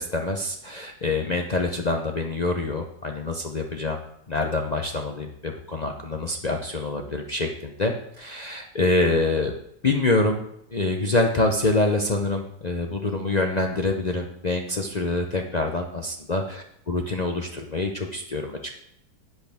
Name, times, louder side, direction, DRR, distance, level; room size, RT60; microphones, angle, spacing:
voice 1, 0.0-4.0 4.3-9.5 9.8-10.4 10.7-18.7, left 2 dB, 60° left, 3 dB, 0.4 m, -26 dB
11.0 x 8.1 x 3.5 m, 0.74 s
omnidirectional pair, 1.9 m